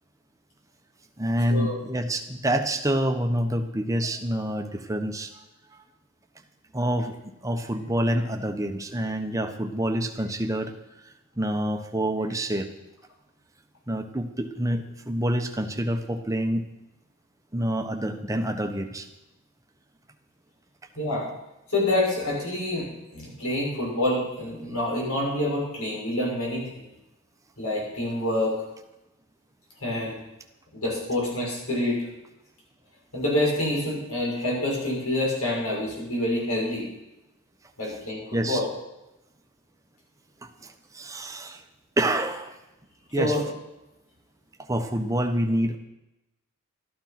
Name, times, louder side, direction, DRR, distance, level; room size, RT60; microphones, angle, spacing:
voice 1, 1.2-5.3 6.7-10.7 11.0-11.1 11.4-12.7 13.9-16.6 17.5-19.1 37.8-38.0 38.3-38.7 40.4-41.6 42.0-42.6 43.1-43.5 44.6-45.8, right 1 dB, 15° right, 5 dB, 1.0 m, -27 dB
voice 2, 21.7-22.9 23.1-26.8 27.6-28.6 29.8-30.2 30.7-32.1 33.1-36.8 37.8-38.6 43.2-43.4, left 1 dB, 75° left, -3 dB, 6.4 m, -27 dB
13.0 x 12.0 x 5.9 m, 0.93 s
head